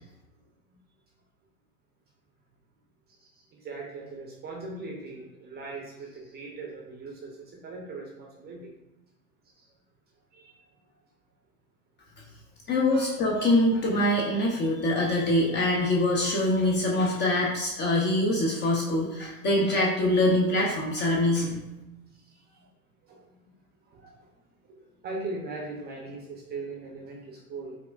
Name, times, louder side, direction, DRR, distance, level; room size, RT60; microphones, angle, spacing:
voice 1, 3.5-8.7 9.5-9.7 10.3-10.5 12.9-13.1 22.2-22.7 23.0-23.5 23.9-24.3 24.7-27.8, right 3 dB, 20° right, -1 dB, 0.6 m, -40 dB
voice 2, 12.7-21.6, left 1 dB, 25° left, -2 dB, 0.6 m, -24 dB
4.7 x 2.4 x 2.3 m, 0.98 s
hypercardioid pair, 110°, 45 cm